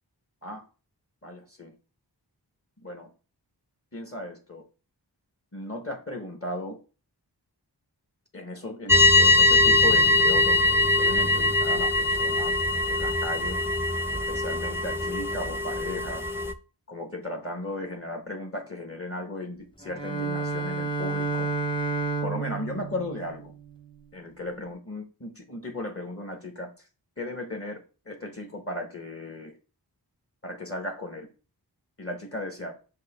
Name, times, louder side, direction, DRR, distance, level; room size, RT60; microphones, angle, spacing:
voice 1, 1.2-1.7 2.8-3.1 3.9-4.6 5.5-6.8 8.3-12.6 12.9-13.6 14.3-16.3 16.9-21.5 22.2-23.5 24.1-26.9 27.2-29.5 30.4-31.3 32.0-32.7, left 1 dB, 35° left, 2 dB, 1.2 m, -36 dB
sound 1, 8.9-16.5, left 2 dB, 5° right, 0.5 m, -22 dB
Bowed string instrument, 19.8-24.0, right 3 dB, 10° left, 0.9 m, -31 dB
6.5 x 2.8 x 5.4 m, 0.34 s
wide cardioid pair, 55°, 42 cm